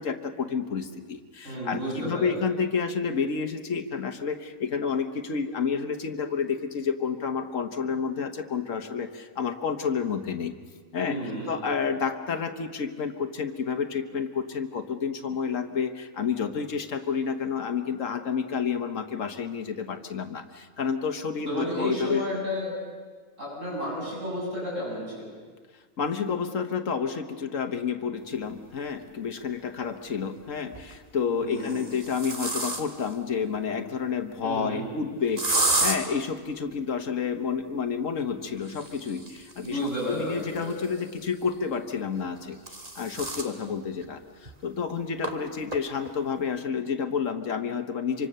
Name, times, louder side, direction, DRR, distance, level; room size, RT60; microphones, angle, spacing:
voice 1, 0.0-10.5 10.9-11.2 11.5-22.2 26.0-42.6 42.9-48.3, left 6 dB, 75° left, 6 dB, 1.7 m, -30 dB
voice 2, 1.4-2.4 11.0-11.6 21.5-22.7 23.4-25.1 31.3-31.8 34.4-34.8 39.6-40.7, equal, 70° right, -4 dB, 8.3 m, -32 dB
sound 1, 29.0-29.1 30.5-31.0 31.5-33.1 35.4-36.0 38.6-41.2 42.2-43.5 44.0-44.1 44.5-44.6 45.2-45.3 45.7-46.1, right 2 dB, 30° right, 1.9 m, -31 dB
26.5 x 25.0 x 6.8 m, 1.5 s
omnidirectional pair, 1.3 m